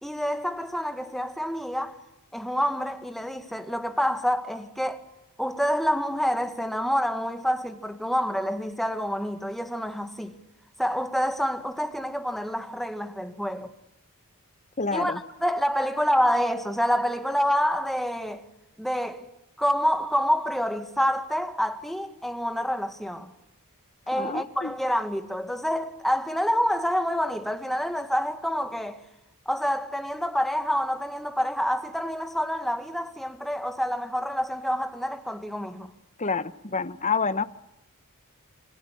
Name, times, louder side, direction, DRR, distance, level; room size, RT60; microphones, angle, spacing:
voice 1, 0.0-2.0 2.3-5.0 5.4-10.3 10.8-13.7 14.9-15.1 15.4-18.4 18.8-19.2 19.6-23.3 24.1-29.0 29.5-35.9, equal, ahead, 2.0 m, -27 dB
voice 2, 14.8-15.2 24.1-24.7 36.2-37.4, left 4 dB, 35° left, 1.2 m, -28 dB
28.0 x 24.0 x 8.6 m
head